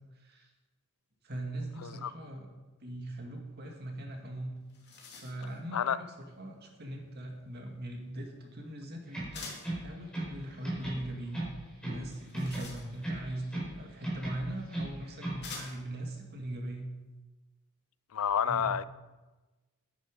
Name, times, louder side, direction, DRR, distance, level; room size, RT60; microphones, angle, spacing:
voice 1, 0.2-0.5 1.2-2.5 2.8-4.5 5.2-11.4 11.8-16.9 18.5-18.7, right 1 dB, 45° right, 2 dB, 2.1 m, -40 dB
sound 1, 4.2-4.3 4.6-5.6 9.3-9.8 12.0-13.2 14.3-14.4 15.4-16.0, left 4 dB, 50° left, 2.7 m, -46 dB
sound 2, 9.1-10.4 10.6-12.1 12.3-13.8 14.0-15.5, right 1 dB, 5° left, 4.7 m, -37 dB
voice 2, 18.1-18.8, left 8 dB, 75° left, 16 dB, 0.4 m, -29 dB
10.5 x 9.9 x 5.3 m, 1.2 s
head